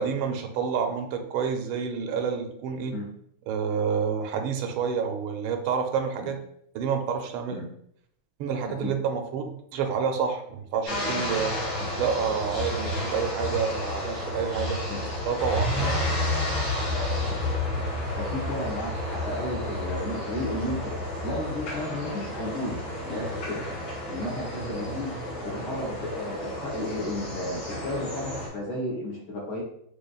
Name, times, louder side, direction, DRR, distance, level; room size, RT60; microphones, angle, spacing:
voice 1, 0.0-3.0 3.5-6.4 6.7-7.6 8.4-11.5 12.0-14.8 15.3-15.9, right 6 dB, 85° right, 5 dB, 1.4 m, -28 dB
sound 1, 10.9-28.5, left 1 dB, 80° left, 2.7 m, -31 dB
voice 2, 18.1-21.0 21.2-23.6 24.1-25.2 25.4-29.6, left 1 dB, 60° left, -3 dB, 1.4 m, -33 dB
6.2 x 2.5 x 2.3 m, 0.69 s
omnidirectional pair, 2.3 m